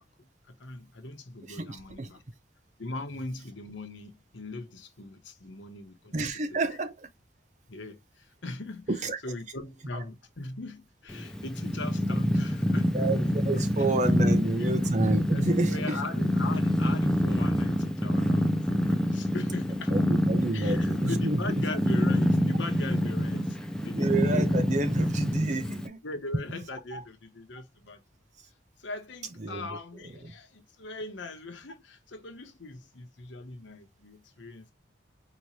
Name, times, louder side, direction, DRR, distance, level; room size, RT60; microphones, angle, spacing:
voice 1, 0.0-2.2 2.8-6.1 6.5-6.8 7.7-8.9 9.2-13.0 13.5-13.6 14.5-14.7 15.3-19.9 20.5-24.9 26.0-28.0 28.8-34.7, left 2 dB, 85° left, 1.1 m, -40 dB
voice 2, 1.5-2.1 6.1-7.1 8.9-9.2 12.9-16.0 19.9-21.6 23.9-26.0 26.9-27.0 29.4-29.8 30.2-30.3, right 2 dB, 40° right, 0.6 m, -29 dB
Purr, 11.1-25.9, equal, 5° left, 0.4 m, -26 dB
4.7 x 3.1 x 2.7 m
head